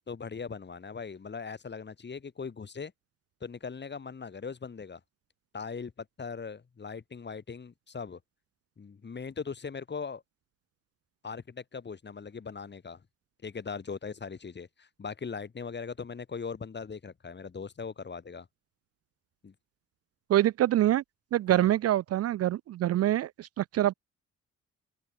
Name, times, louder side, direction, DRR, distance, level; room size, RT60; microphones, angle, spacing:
voice 1, 0.1-2.9 3.4-5.0 5.5-8.2 8.8-10.2 11.2-13.0 13.4-18.5 19.4-19.5 21.5-21.7, left 5 dB, 35° left, 4.5 m, -40 dB
voice 2, 20.3-21.0 21.3-23.9, right 13 dB, 55° right, 0.5 m, -25 dB
open air
cardioid pair, 90°, 30 cm